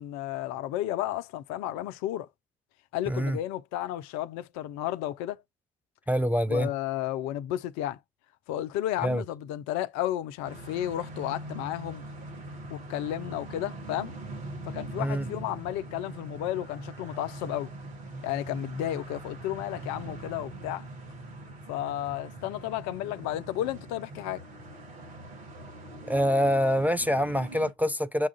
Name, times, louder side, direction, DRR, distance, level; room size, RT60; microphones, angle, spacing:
voice 1, 0.0-2.3 2.9-5.4 6.5-8.0 8.5-12.1 12.7-14.1 14.6-17.7 18.2-20.9 21.7-24.4, left 13 dB, 60° left, 0.5 m, -32 dB
voice 2, 3.1-3.4 6.1-6.7 9.0-9.2 15.0-15.3 26.1-28.3, equal, 5° right, 0.4 m, -25 dB
sound 1, 10.4-27.7, right 2 dB, 75° right, 1.1 m, -42 dB
6.2 x 2.4 x 3.6 m
figure-of-eight pair, 40°, 31 cm